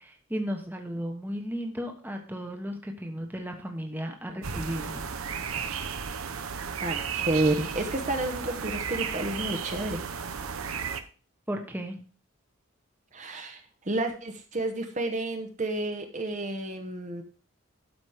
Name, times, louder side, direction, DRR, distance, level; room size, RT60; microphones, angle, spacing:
voice 1, 0.0-5.0 11.5-12.0, equal, 10° right, 4 dB, 1.2 m, -35 dB
sound 1, 4.4-11.0, right 6 dB, 85° right, 0.9 m, -34 dB
voice 2, 6.8-10.0 13.1-17.2, right 2 dB, 35° right, 5 dB, 1.1 m, -30 dB
12.5 x 5.2 x 5.0 m, 0.38 s
head